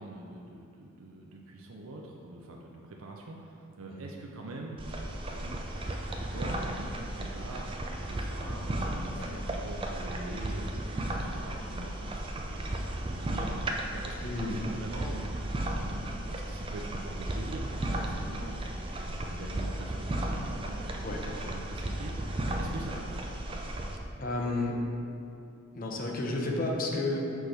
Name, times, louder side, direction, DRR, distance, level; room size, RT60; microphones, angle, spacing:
voice 1, 0.0-5.7 6.1-7.7 8.0-14.1 14.4-15.3 15.8-23.2, right 2 dB, 75° right, -1 dB, 0.5 m, -44 dB
sound 1, 4.8-24.0, right 1 dB, 25° right, 0.4 m, -35 dB
voice 2, 14.2-14.6 21.0-21.2 24.2-24.8 25.7-27.2, left 2 dB, 40° left, 0 dB, 0.7 m, -31 dB
6.3 x 3.4 x 5.9 m, 2.6 s
head